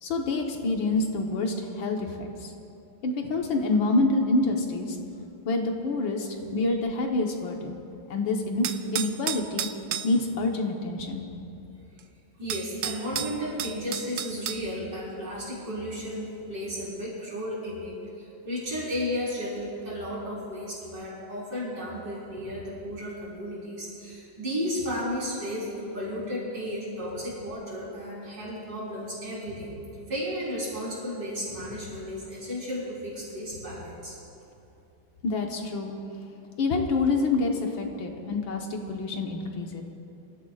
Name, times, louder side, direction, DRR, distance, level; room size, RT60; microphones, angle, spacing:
voice 1, 0.0-2.5 3.0-5.0 5.5-7.8 8.1-8.7 8.9-9.7 10.0-11.2 35.2-35.9 36.6-39.8, left 3 dB, 85° left, 2 dB, 2.0 m, -27 dB
sound 1, 8.6-10.1 12.0-12.1 12.5-14.6, right 10 dB, 85° right, 0.7 m, -32 dB
voice 2, 12.4-29.7 30.1-34.2, equal, 65° right, -7 dB, 4.8 m, -34 dB
24.5 x 15.0 x 2.4 m, 2.7 s
omnidirectional pair, 2.1 m